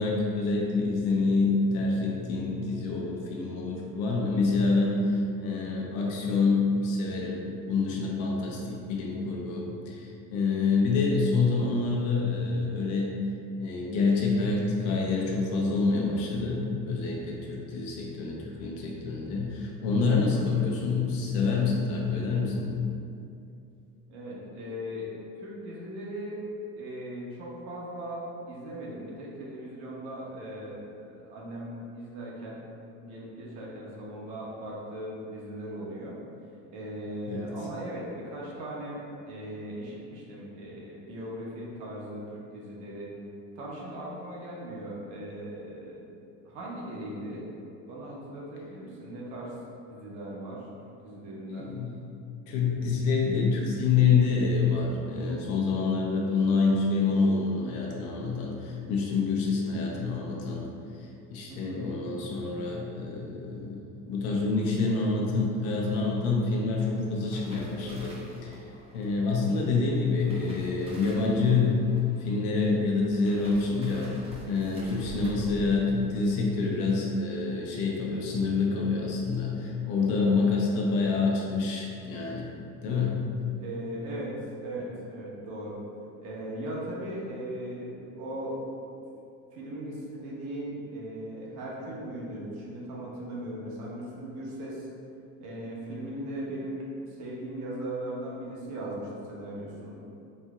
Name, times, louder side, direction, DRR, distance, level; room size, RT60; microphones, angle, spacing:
voice 1, 0.0-7.4 7.7-13.1 13.6-22.7 37.3-37.5 51.5-52.0 52.5-60.7 61.3-68.2 68.4-68.6 68.9-74.1 74.4-82.5 82.8-83.2, left 4 dB, 70° left, -2 dB, 0.8 m, -27 dB
voice 2, 20.3-20.7 24.1-25.1 25.4-26.4 26.8-32.6 33.0-36.2 36.7-43.1 43.5-46.1 46.4-47.5 47.9-49.5 49.9-50.6 51.0-51.7 61.5-62.0 83.6-84.3 84.6-85.8 86.2-88.6 88.9-89.0 89.5-94.9 95.4-96.8 97.2-99.9, right 1 dB, 60° right, -4 dB, 0.9 m, -38 dB
sound 1, 66.9-78.3 78.6-78.9 79.2-79.7 79.9-80.1, equal, 20° right, 0.5 m, -48 dB
4.4 x 2.8 x 2.3 m, 2.5 s
cardioid pair, 140°, 33 cm